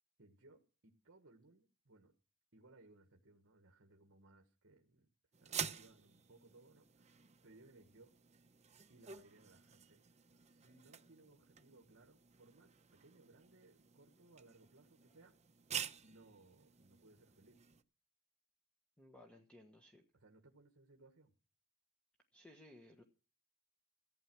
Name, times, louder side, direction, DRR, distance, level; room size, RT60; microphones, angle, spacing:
voice 1, 0.2-2.1 2.5-5.1 5.4-8.1 8.9-10.0 10.4-15.3 16.0-17.6 20.1-21.3, right 2 dB, 55° right, 4 dB, 1.5 m, -65 dB
sound 1, 5.3-17.8, right 8 dB, 30° right, 0.8 m, -49 dB
voice 2, 19.0-20.0 22.3-23.0, left 1 dB, 5° left, 4 dB, 1.4 m, -60 dB
15.0 x 9.6 x 6.2 m, 0.36 s
head